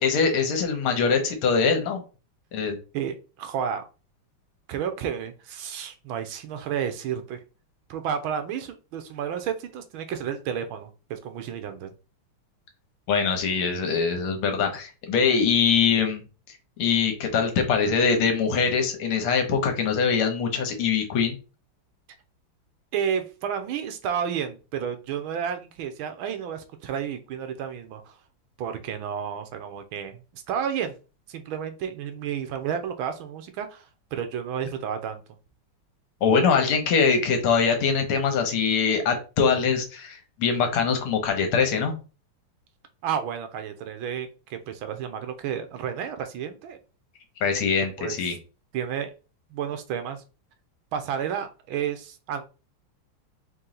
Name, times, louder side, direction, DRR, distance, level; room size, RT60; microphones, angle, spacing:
voice 1, 0.0-2.0 2.5-2.8 13.1-16.2 16.8-21.4 36.2-42.0 47.4-48.4, left 5 dB, 85° left, 5 dB, 1.9 m, -23 dB
voice 2, 2.9-3.8 4.7-7.4 7.9-11.9 22.9-28.2 28.6-30.9 31.3-35.2 43.0-46.8 48.0-48.3 48.7-49.1 49.5-50.2 50.9-52.4, right 8 dB, 75° right, 8 dB, 1.4 m, -31 dB
4.4 x 3.1 x 3.8 m, 0.33 s
omnidirectional pair, 2.4 m